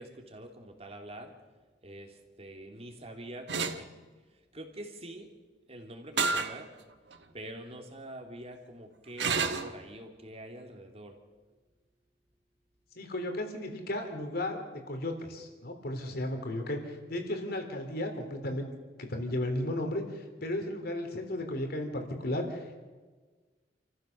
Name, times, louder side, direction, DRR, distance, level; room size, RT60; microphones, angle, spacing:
voice 1, 0.0-1.3 1.8-3.9 4.5-5.3 5.7-6.7 7.3-11.2, right 1 dB, 35° right, 4 dB, 2.8 m, -45 dB
sound 1, 3.5-3.8 6.2-6.5 7.1-7.2 9.2-9.7, right 5 dB, 70° right, 1.5 m, -29 dB
voice 2, 12.9-18.7 19.0-22.8, left 1 dB, 60° left, 5 dB, 3.4 m, -34 dB
28.5 x 14.5 x 6.7 m, 1.4 s
head